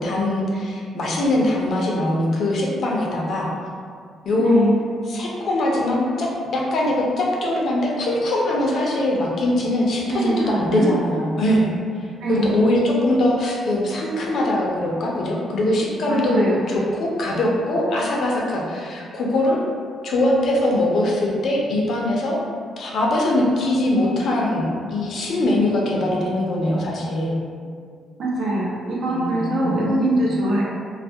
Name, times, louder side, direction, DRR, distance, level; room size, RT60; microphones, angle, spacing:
voice 1, 0.0-3.5 4.2-4.6 5.1-11.7 12.3-19.6 20.0-22.4 22.8-27.4 29.1-30.3, left 1 dB, 60° left, -2 dB, 0.5 m, -22 dB
voice 2, 4.4-4.8 10.1-10.9 12.2-12.6 16.1-16.6 28.2-30.6, right 1 dB, 65° right, -5 dB, 0.6 m, -22 dB
2.3 x 2.0 x 2.6 m, 2.1 s
cardioid pair, 90°, 0 cm